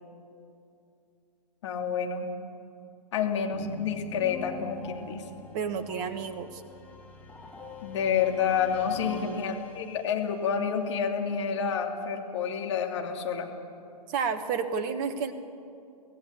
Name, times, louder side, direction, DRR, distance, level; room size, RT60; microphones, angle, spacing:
voice 1, 1.6-2.3 3.1-5.2 7.8-13.5, left 7 dB, 45° left, 2 dB, 2.7 m, -29 dB
dramatic production logo, 3.5-10.3, left 3 dB, 5° left, 2.3 m, -45 dB
voice 2, 5.5-6.6 9.1-9.5 14.1-15.3, right 6 dB, 30° right, 9 dB, 1.4 m, -31 dB
25.0 x 16.0 x 8.4 m, 2.6 s
figure-of-eight pair, 120°, 21 cm